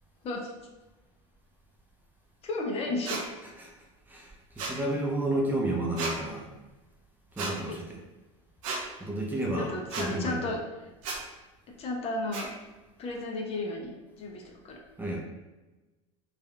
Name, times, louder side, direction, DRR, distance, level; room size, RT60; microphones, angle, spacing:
voice 1, 2.4-3.2 7.7-7.8 9.6-10.6 11.8-12.5 13.0-14.8, left 2 dB, 35° left, 0 dB, 0.6 m, -33 dB
sound 1, 3.1-3.2 4.6-4.8 6.0-6.1 7.4-7.5 8.6-8.8 9.9-10.1 11.0-11.2 12.3-12.5, right 3 dB, 80° right, 0.7 m, -33 dB
voice 2, 4.1-6.5 7.4-8.0 9.0-10.4 15.0-15.2, right 1 dB, 10° right, -2 dB, 0.5 m, -31 dB
3.4 x 2.3 x 2.2 m, 1.1 s
supercardioid pair, 105°, 17 cm